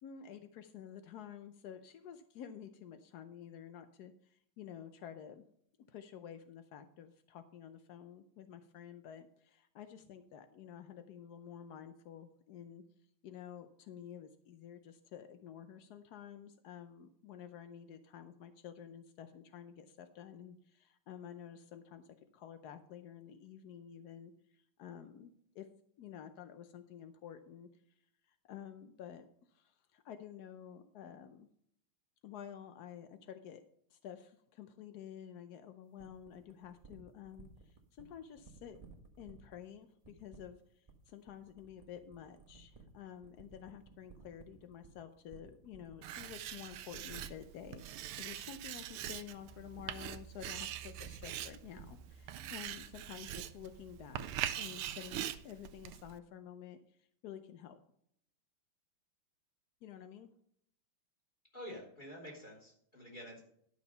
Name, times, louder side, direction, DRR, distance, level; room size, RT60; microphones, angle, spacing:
voice 1, 0.0-5.4 5.9-12.8 13.2-25.7 26.0-27.8 28.3-31.5 32.2-33.6 33.9-38.8 39.2-54.3 54.6-57.8 59.8-60.3, left 9 dB, 75° left, 10 dB, 0.9 m, -51 dB
sound 1, 36.0-53.7, right 4 dB, 20° right, 1.2 m, -57 dB
Writing, 46.0-56.2, right 12 dB, 85° right, 1.5 m, -43 dB
voice 2, 61.5-63.4, equal, 20° left, -2 dB, 3.4 m, -48 dB
11.5 x 6.3 x 5.4 m, 0.69 s
omnidirectional pair, 2.4 m